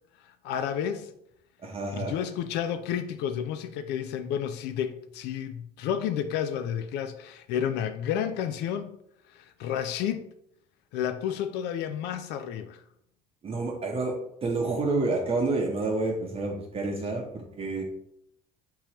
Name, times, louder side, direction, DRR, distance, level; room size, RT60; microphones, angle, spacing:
voice 1, 0.4-1.1 1.9-8.9 9.3-10.2 10.9-12.8, left 9 dB, 85° left, 0.4 m, -31 dB
voice 2, 1.6-2.1 13.4-14.1 14.4-17.8, right 3 dB, 35° right, 0.7 m, -29 dB
3.7 x 2.9 x 4.3 m
cardioid pair, 110°, 17 cm